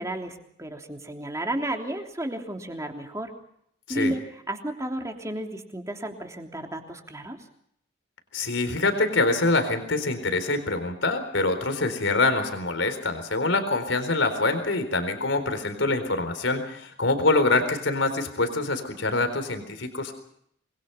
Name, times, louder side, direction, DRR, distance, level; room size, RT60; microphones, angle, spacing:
voice 1, 0.0-3.3 3.9-4.2 4.5-7.4, right 1 dB, 15° right, 3 dB, 3.2 m, -32 dB
voice 2, 8.3-20.1, left 2 dB, 80° left, 8 dB, 4.2 m, -25 dB
26.5 x 21.5 x 5.8 m, 0.70 s
head